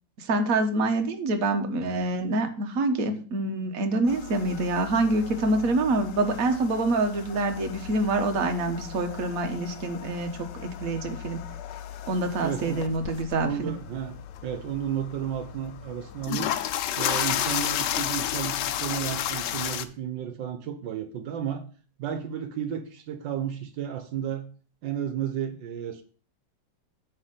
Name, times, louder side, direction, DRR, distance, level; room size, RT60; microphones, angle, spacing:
voice 1, 0.2-11.4 12.1-13.7, right 2 dB, 50° right, 5 dB, 1.5 m, -26 dB
sound 1, 4.1-19.8, left 10 dB, 75° left, 1.2 m, -33 dB
voice 2, 12.4-12.9 13.4-16.5 17.0-21.6 22.0-24.5 24.8-26.0, right 9 dB, 80° right, 8 dB, 1.5 m, -33 dB
9.4 x 3.5 x 6.6 m, 0.40 s
omnidirectional pair, 2.0 m